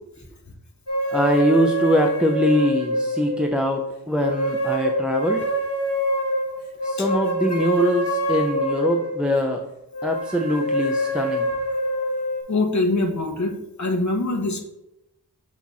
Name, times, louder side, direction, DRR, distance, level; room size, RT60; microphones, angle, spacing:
sound 1, 0.9-3.6 4.2-9.3 9.9-12.4, equal, 85° left, 1.9 m, -25 dB
voice 1, 1.1-5.4 6.8-9.6 10.0-11.5, equal, 5° right, 2 dB, 0.5 m, -22 dB
voice 2, 12.5-14.6, left 2 dB, 45° left, 3 dB, 1.1 m, -23 dB
8.3 x 3.0 x 4.1 m, 0.88 s
wide cardioid pair, 85°, 39 cm